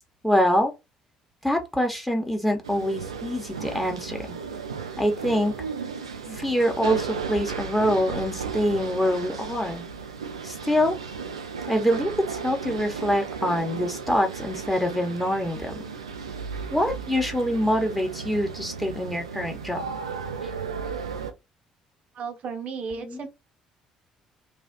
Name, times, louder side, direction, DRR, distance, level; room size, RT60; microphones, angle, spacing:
voice 1, 0.2-0.7 1.4-4.4 5.0-5.5 6.3-9.8 10.4-11.0 11.7-15.7 16.7-19.8 23.0-23.3, equal, 5° left, 1.2 m, -25 dB
sound 1, 2.6-21.3, right 5 dB, 80° right, 0.4 m, -35 dB
voice 2, 22.1-23.3, right 5 dB, 50° right, 0.9 m, -34 dB
3.3 x 2.4 x 2.7 m
figure-of-eight pair, 50°, 3 cm